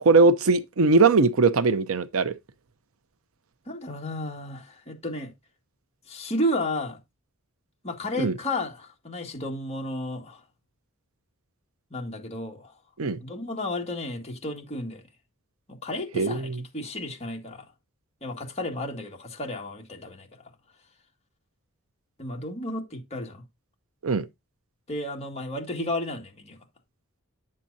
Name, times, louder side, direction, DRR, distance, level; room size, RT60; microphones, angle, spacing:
voice 1, 0.0-2.3 8.2-8.3 13.0-13.2 16.1-16.5 24.0-24.3, right 3 dB, 65° right, 0.6 m, -20 dB
voice 2, 3.7-5.3 6.1-7.0 7.8-10.4 11.9-12.7 13.2-15.0 15.7-17.7 18.2-20.5 22.2-23.4 24.9-26.6, left 1 dB, 30° left, 1.9 m, -32 dB
9.6 x 7.5 x 2.7 m
head